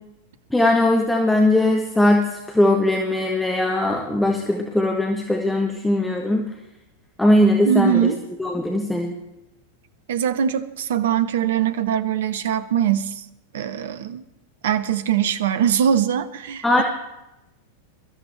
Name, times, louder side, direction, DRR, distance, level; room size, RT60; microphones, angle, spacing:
voice 1, 0.5-6.4 7.2-8.1 8.4-9.1 16.6-16.8, left 1 dB, 5° left, 1 dB, 1.4 m, -19 dB
voice 2, 7.6-8.2 10.1-13.2 13.5-14.2 14.6-16.8, right 9 dB, 60° right, 13 dB, 0.9 m, -22 dB
22.5 x 13.5 x 3.3 m, 0.95 s
figure-of-eight pair, 90°, 0 cm